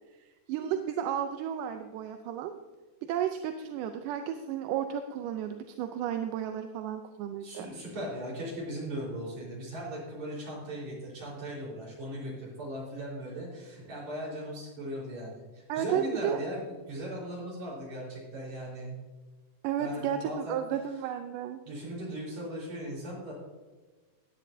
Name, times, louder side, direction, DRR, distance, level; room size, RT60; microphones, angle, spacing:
voice 1, 0.5-2.6 3.0-7.7 15.7-16.4 19.6-21.6, right 9 dB, 80° right, 7 dB, 2.1 m, -33 dB
voice 2, 7.4-19.0 19.8-20.6 21.7-23.3, right 1 dB, 55° right, -5 dB, 5.4 m, -38 dB
15.5 x 10.5 x 2.7 m, 1.3 s
omnidirectional pair, 3.9 m